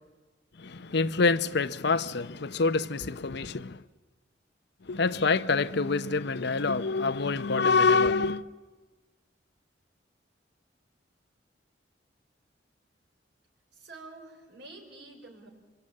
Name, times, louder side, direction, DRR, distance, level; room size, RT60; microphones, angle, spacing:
voice 1, 0.6-3.8 4.9-8.4, left 4 dB, 65° left, 0.8 m, -26 dB
voice 2, 13.7-15.5, right 2 dB, 70° right, 5.6 m, -48 dB
26.5 x 24.0 x 8.7 m
head